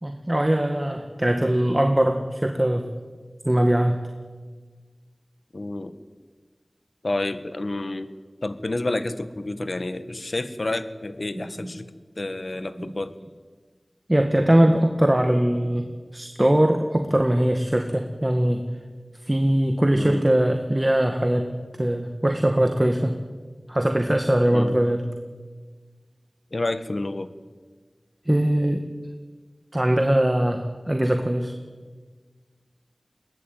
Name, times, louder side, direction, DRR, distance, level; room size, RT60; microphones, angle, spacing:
voice 1, 0.0-2.9 3.4-4.0 11.3-11.4 12.8-12.9 14.1-18.7 19.2-21.5 21.8-23.2 23.7-25.0 28.3-28.8 29.7-31.6, right 1 dB, 25° right, 5 dB, 1.9 m, -21 dB
voice 2, 5.5-6.0 7.0-8.1 8.4-11.9 12.2-13.1 20.0-20.2 24.5-24.7 26.5-27.3, left 2 dB, 65° left, 12 dB, 1.5 m, -29 dB
22.0 x 18.5 x 9.2 m, 1.4 s
wide cardioid pair, 45°, 0 cm